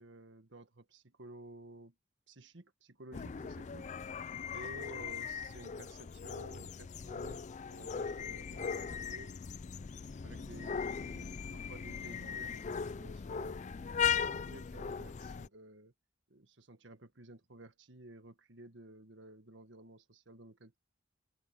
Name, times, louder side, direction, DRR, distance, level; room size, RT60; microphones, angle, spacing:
voice 1, 0.0-1.9 2.3-3.9 4.5-9.4 10.2-13.6 14.0-15.9 16.3-20.8, right 2 dB, 80° right, 1.7 m, -53 dB
sound 1, 3.1-15.5, left 6 dB, 40° left, 0.4 m, -39 dB
head